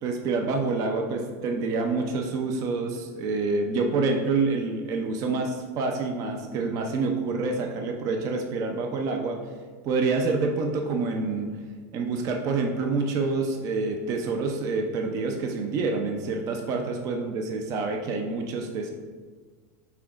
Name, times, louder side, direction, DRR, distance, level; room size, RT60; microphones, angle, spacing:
voice 1, 0.0-9.4 9.8-11.5 11.9-18.9, right 3 dB, 40° right, 3 dB, 0.5 m, -27 dB
5.7 x 3.4 x 2.4 m, 1.5 s
supercardioid pair, 125°, 8 cm